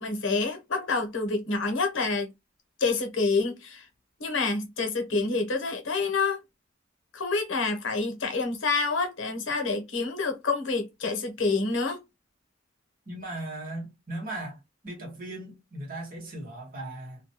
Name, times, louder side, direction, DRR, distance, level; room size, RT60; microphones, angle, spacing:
voice 1, 0.0-2.3 2.8-3.8 4.2-6.4 7.1-12.0, left 3 dB, 90° left, 0.8 m, -27 dB
voice 2, 13.1-14.6 14.8-17.2, right 1 dB, 50° right, 1.1 m, -37 dB
2.2 x 2.2 x 2.8 m
head